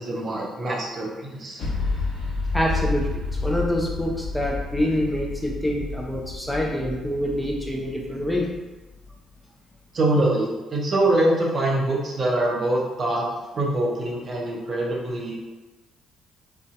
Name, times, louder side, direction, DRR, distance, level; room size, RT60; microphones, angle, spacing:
voice 1, 0.0-1.7 9.9-13.3 13.5-15.3, right 1 dB, 40° right, -3 dB, 0.5 m, -24 dB
sound 1, 1.6-9.1, left 3 dB, 50° left, 1.0 m, -30 dB
voice 2, 2.5-3.1 3.4-8.5, equal, 5° left, -2 dB, 0.4 m, -26 dB
2.5 x 2.2 x 2.3 m, 1.1 s
figure-of-eight pair, 45°, 0 cm